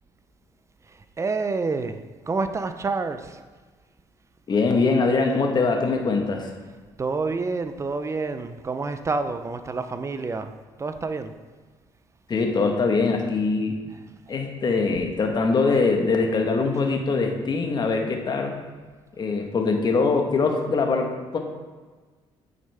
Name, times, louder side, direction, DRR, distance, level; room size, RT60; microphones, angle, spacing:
voice 1, 0.9-3.4 7.0-10.5 10.8-11.3 14.3-14.4, right 4 dB, 30° right, 9 dB, 0.6 m, -28 dB
voice 2, 4.5-6.5 12.3-13.8 14.3-18.6 19.2-21.4, left 4 dB, 45° left, 3 dB, 1.3 m, -22 dB
8.8 x 6.6 x 3.5 m, 1.4 s
cardioid pair, 85°, 10 cm